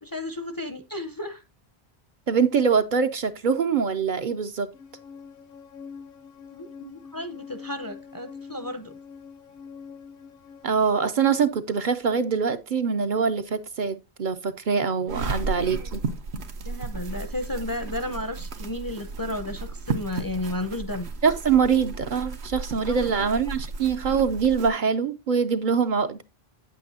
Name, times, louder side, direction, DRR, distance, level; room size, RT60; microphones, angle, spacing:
voice 1, 0.0-1.4 6.5-9.0 15.8-15.9 16.6-21.1 22.9-23.3, left 1 dB, 25° left, 0.5 m, -33 dB
voice 2, 2.3-4.7 10.6-16.0 21.2-26.2, right 6 dB, 55° right, 0.7 m, -24 dB
sound 1, 4.7-10.6, left 6 dB, 65° left, 0.9 m, -44 dB
sound 2, 15.1-24.7, right 4 dB, 85° right, 1.2 m, -34 dB
8.5 x 8.4 x 2.7 m
omnidirectional pair, 1.1 m